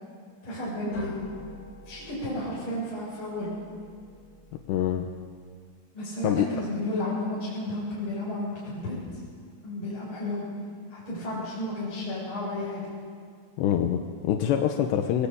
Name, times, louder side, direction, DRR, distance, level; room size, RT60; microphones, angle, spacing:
voice 1, 0.4-1.2 1.8-3.5 5.9-9.2 9.6-10.4 10.9-12.8, left 1 dB, 25° left, -7 dB, 7.9 m, -32 dB
sound 1, 0.9-5.6, left 2 dB, 45° left, 3.2 m, -47 dB
voice 2, 4.7-5.1 6.2-6.5 13.6-15.3, left 10 dB, 75° left, 3 dB, 3.1 m, -25 dB
24.0 x 21.0 x 8.7 m, 2.1 s
omnidirectional pair, 5.4 m